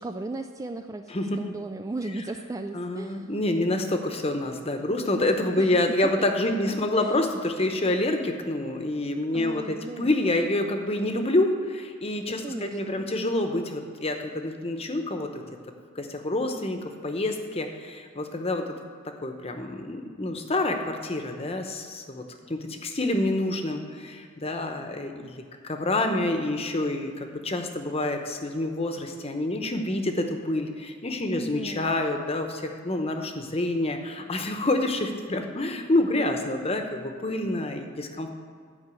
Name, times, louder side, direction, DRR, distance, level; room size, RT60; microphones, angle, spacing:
voice 1, 0.0-3.3 5.6-5.7 7.0-7.2 9.3-10.1 12.4-13.1 31.3-31.9, right 2 dB, 15° right, 7 dB, 0.3 m, -36 dB
voice 2, 1.1-1.4 2.7-15.4 15.9-18.7 19.0-38.3, left 1 dB, 30° left, 5 dB, 0.9 m, -27 dB
11.0 x 5.8 x 8.3 m, 2.1 s
head